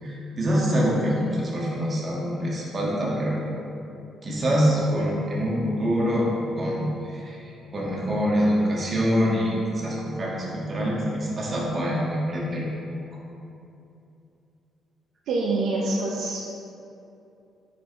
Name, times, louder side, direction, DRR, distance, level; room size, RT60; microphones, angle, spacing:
voice 1, 0.0-3.4 4.2-12.7, equal, 35° right, -4 dB, 1.5 m, -25 dB
voice 2, 15.3-16.4, right 2 dB, 80° right, -3 dB, 0.6 m, -25 dB
5.1 x 4.6 x 4.1 m, 2.7 s
cardioid pair, 90°, 0 cm